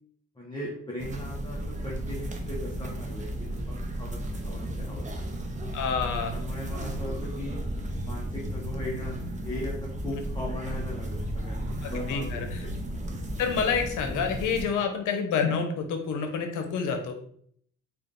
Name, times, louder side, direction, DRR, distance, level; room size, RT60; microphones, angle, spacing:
voice 1, 0.4-5.0 6.1-7.6 8.0-12.8, left 1 dB, 15° left, -5 dB, 0.9 m, -38 dB
sound 1, 1.0-14.6, right 1 dB, 25° right, 0.7 m, -34 dB
voice 2, 5.7-6.3 11.8-12.6 13.4-17.1, left 6 dB, 80° left, 5 dB, 0.8 m, -28 dB
3.6 x 2.4 x 3.7 m, 0.62 s
cardioid pair, 90°, 30 cm